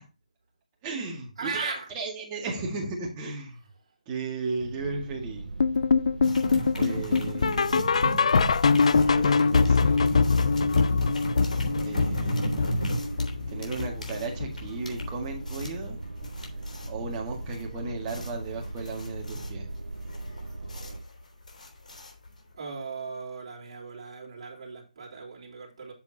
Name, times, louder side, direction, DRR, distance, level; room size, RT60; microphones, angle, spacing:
voice 1, 0.8-3.6 4.1-5.5 6.8-7.8 9.1-10.2 11.8-13.2 13.5-16.0 16.9-19.7, right 3 dB, 15° right, 1.9 m, -35 dB
voice 2, 1.4-1.9 3.8-3.9 22.5-25.9, right 4 dB, 40° right, 3.1 m, -37 dB
sound 1, 4.6-21.0, right 2 dB, 80° right, 0.7 m, -39 dB
sound 2, 5.6-14.7 15.0-15.3 15.6-15.7 16.2-16.3 16.8-16.9, left 5 dB, 55° left, 0.4 m, -24 dB
sound 3, 6.2-22.5, equal, 75° left, 3.3 m, -34 dB
8.0 x 7.2 x 2.8 m
figure-of-eight pair, 160°, 4 cm